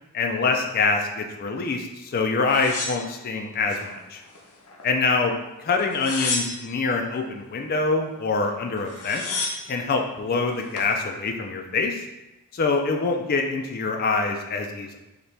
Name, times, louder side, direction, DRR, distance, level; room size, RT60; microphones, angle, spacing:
voice 1, 0.1-4.2 4.8-9.2 9.7-12.0 12.5-15.0, left 4 dB, 40° left, 3 dB, 0.4 m, -25 dB
sound 1, 2.5-3.8 4.3-5.1 5.8-6.9 8.4-8.5 8.8-9.8 10.4-10.9, left 4 dB, 80° left, 0.8 m, -31 dB
4.1 x 2.9 x 3.3 m, 0.98 s
head